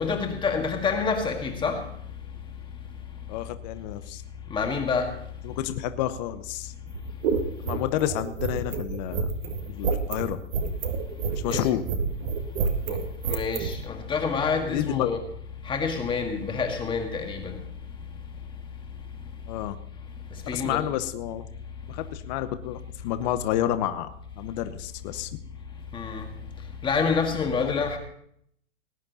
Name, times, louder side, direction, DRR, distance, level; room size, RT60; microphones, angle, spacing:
voice 1, 0.0-1.8 4.5-5.1 11.5-11.7 13.3-15.2 15.7-17.6 20.5-20.8 25.9-26.3 26.8-28.0, left 5 dB, 15° left, 3 dB, 1.8 m, -27 dB
voice 2, 3.3-4.2 5.4-6.7 7.6-9.3 9.7-10.4 11.4-11.8 14.6-15.1 19.5-19.8 20.5-21.4 21.9-24.1 24.4-25.3 27.6-27.8, left 12 dB, 35° left, 11 dB, 0.9 m, -29 dB
sound 1, 6.9-13.7, right 6 dB, 50° right, 1.7 m, -28 dB
19.0 x 9.6 x 4.0 m, 0.68 s
hypercardioid pair, 135°, 36 cm